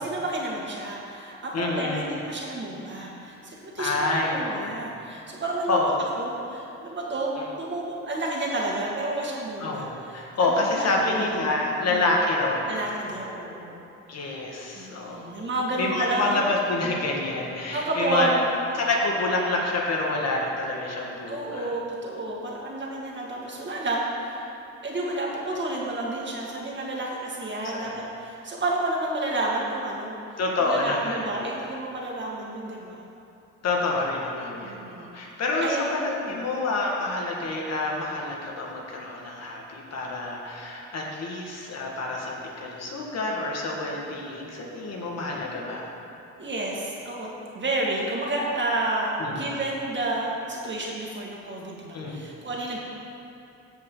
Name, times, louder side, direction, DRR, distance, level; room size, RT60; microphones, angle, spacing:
voice 1, 0.0-5.8 6.2-11.6 11.9-12.1 12.7-13.8 14.2-14.3 14.8-16.4 17.7-18.6 21.3-24.6 24.8-33.1 34.6-35.2 35.6-35.9 36.2-36.4 46.4-47.3 47.5-52.8, right 2 dB, 40° right, -3 dB, 2.0 m, -30 dB
voice 2, 1.5-2.1 3.8-4.8 5.7-6.1 7.4-7.5 9.6-13.0 14.1-15.3 15.8-18.3 18.8-21.7 27.6-28.0 30.4-31.7 33.6-45.9 49.2-49.4 51.9-52.3, left 2 dB, 55° left, -2 dB, 1.7 m, -28 dB
15.5 x 5.2 x 3.9 m, 2.9 s
cardioid pair, 90°, 30 cm